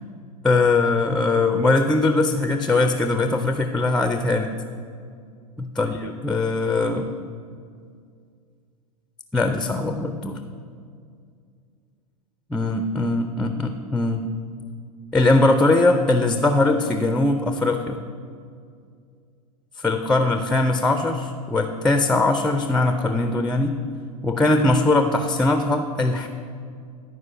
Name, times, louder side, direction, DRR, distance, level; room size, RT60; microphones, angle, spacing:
voice 1, 0.4-4.5 5.6-7.1 9.3-10.4 12.5-14.3 15.1-18.0 19.8-23.8 24.2-26.3, left 2 dB, 5° left, 7 dB, 0.4 m, -21 dB
11.5 x 4.7 x 5.6 m, 2.2 s
figure-of-eight pair, 90°, 19 cm